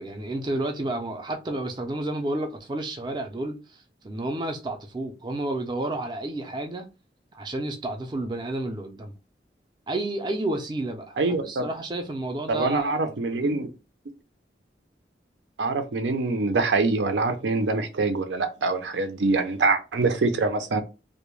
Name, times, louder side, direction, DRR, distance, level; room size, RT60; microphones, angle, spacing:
voice 1, 0.0-6.9 7.3-9.1 9.9-11.2 11.5-13.5, right 2 dB, 25° right, 0.4 m, -31 dB
voice 2, 11.2-11.6 12.5-13.7 15.6-20.8, right 3 dB, 90° right, 0.5 m, -24 dB
2.2 x 2.1 x 3.0 m
head